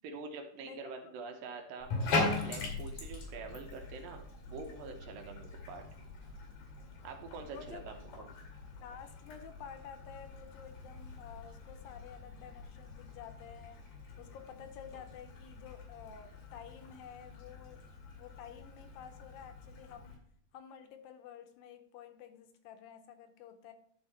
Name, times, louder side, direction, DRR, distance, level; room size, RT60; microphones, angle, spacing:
voice 1, 0.0-1.9 2.2-5.8 7.0-8.3, right 4 dB, 75° right, 4 dB, 2.5 m, -45 dB
Bathtub (filling or washing), 1.8-20.2, left 3 dB, 55° left, 3.4 m, -41 dB
voice 2, 7.4-7.8 8.8-13.8 14.2-20.2 20.5-23.7, left 8 dB, 80° left, 7 dB, 2.3 m, -51 dB
11.5 x 4.8 x 4.2 m, 0.65 s
omnidirectional pair, 4.3 m